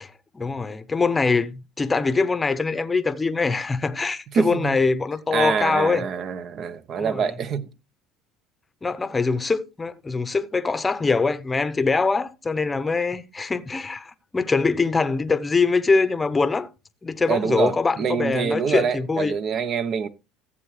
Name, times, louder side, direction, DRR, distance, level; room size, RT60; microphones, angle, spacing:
voice 1, 0.0-6.0 7.0-7.3 8.8-16.7 17.0-19.4, left 4 dB, 20° left, 0.8 m, -23 dB
voice 2, 4.3-4.8 5.3-7.7 17.3-20.1, right 6 dB, 50° right, 0.9 m, -25 dB
14.5 x 7.6 x 3.2 m
supercardioid pair, 95°, 0 cm